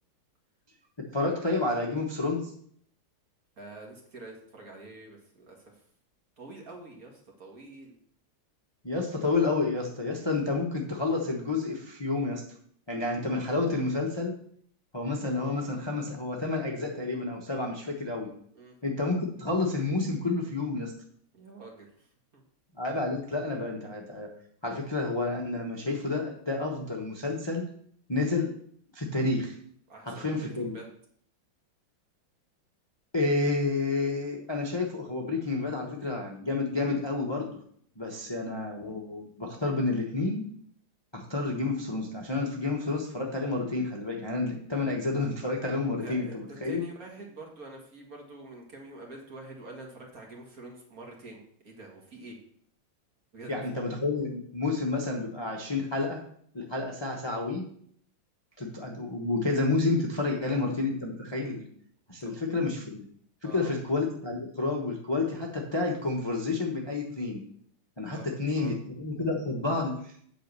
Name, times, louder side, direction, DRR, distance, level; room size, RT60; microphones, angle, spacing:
voice 1, 1.0-2.5 8.8-12.4 12.9-14.4 14.9-18.3 18.8-20.9 22.8-24.3 24.6-27.7 28.1-28.5 28.9-29.5 30.1-30.8 33.1-37.6 38.0-40.5 41.1-46.8 53.5-56.2 56.5-57.6 58.6-61.7 62.1-63.1 63.4-67.4 68.0-70.2, left 3 dB, 15° left, 0 dB, 0.9 m, -30 dB
voice 2, 3.6-5.8 6.4-8.0 18.6-18.7 21.3-22.4 29.9-30.9 38.1-38.3 45.8-52.4 53.3-53.5 60.2-60.4 62.2-62.4 63.4-63.7 68.1-68.7, right 2 dB, 45° right, 0 dB, 2.2 m, -46 dB
8.6 x 5.2 x 6.7 m, 0.62 s
omnidirectional pair, 2.3 m